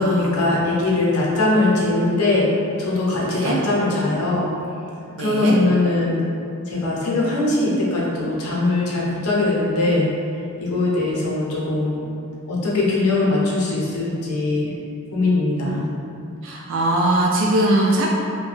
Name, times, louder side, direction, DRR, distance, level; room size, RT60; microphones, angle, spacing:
voice 1, 0.0-2.5 2.8-4.5 5.2-6.2 6.7-10.1 10.6-12.0 12.5-14.7 15.1-15.8, left 2 dB, 80° left, -5 dB, 0.7 m, -21 dB
voice 2, 3.1-3.6 5.2-5.6 15.7-15.9 16.4-18.1, right 1 dB, 60° right, -2 dB, 0.3 m, -21 dB
2.6 x 2.2 x 3.2 m, 2.7 s
head